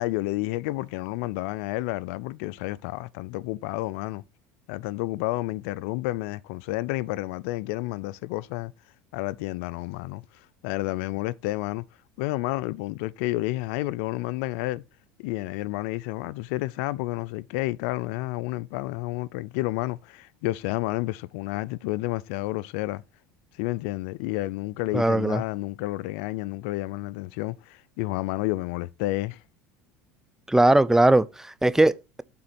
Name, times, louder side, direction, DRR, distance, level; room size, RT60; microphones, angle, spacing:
voice 1, 0.0-4.2 4.7-8.7 9.1-11.8 12.2-14.8 15.2-23.0 23.5-29.4, left 18 dB, 75° left, 0.4 m, -30 dB
voice 2, 24.9-25.4 30.5-32.2, right 2 dB, 5° right, 0.4 m, -20 dB
7.5 x 3.8 x 4.2 m
supercardioid pair, 100°, 7 cm